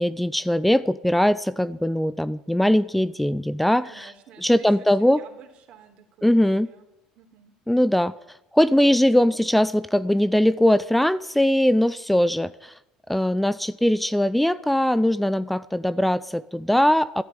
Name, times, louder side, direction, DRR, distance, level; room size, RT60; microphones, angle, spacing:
voice 1, 0.0-4.1 4.4-5.2 6.2-6.7 7.7-8.1 8.5-12.7 13.1-17.2, left 1 dB, 5° left, 16 dB, 0.5 m, -21 dB
voice 2, 3.8-6.9 7.1-7.5, right 8 dB, 60° right, 4 dB, 3.5 m, -50 dB
13.0 x 11.0 x 9.8 m, 0.88 s
supercardioid pair, 90°, 2 cm